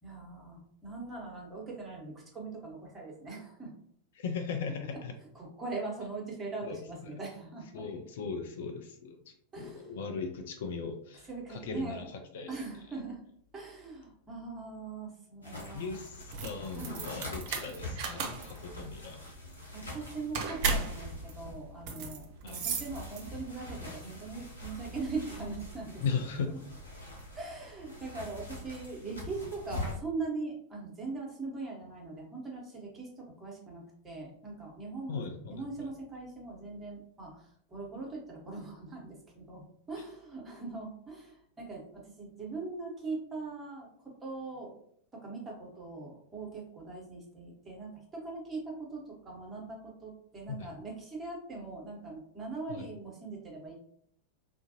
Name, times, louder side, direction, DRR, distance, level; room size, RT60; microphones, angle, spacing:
voice 1, 0.0-3.7 4.9-5.0 5.3-7.8 9.5-9.9 11.3-12.1 12.5-13.2 13.5-15.9 16.7-17.0 19.7-26.0 26.5-26.6 27.3-35.2 35.5-44.7 45.1-53.7, right 3 dB, 15° right, -2 dB, 1.1 m, -41 dB
voice 2, 4.2-5.1 6.6-6.8 7.7-12.0 12.3-12.5 15.7-19.2 22.4-22.6 26.0-26.5 35.1-35.6 50.5-50.7 52.7-52.9, left 5 dB, 55° left, 5 dB, 0.4 m, -38 dB
sound 1, 15.4-30.0, left 1 dB, 75° left, 1.0 m, -44 dB
sound 2, 16.2-23.5, right 4 dB, 45° right, 0.5 m, -36 dB
3.5 x 2.5 x 2.7 m, 0.67 s
figure-of-eight pair, 90°, 0 cm